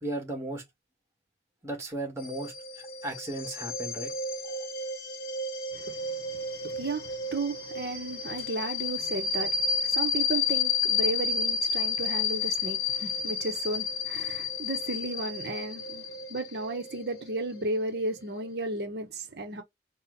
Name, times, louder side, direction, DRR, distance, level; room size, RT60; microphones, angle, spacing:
voice 1, 0.0-0.6 1.6-4.1 4.4-4.7, right 1 dB, 15° right, 1.8 m, -36 dB
sound 1, 2.2-18.5, left 5 dB, 55° left, 0.7 m, -31 dB
voice 2, 5.7-19.6, right 2 dB, 70° right, 1.0 m, -34 dB
4.3 x 2.4 x 4.0 m
head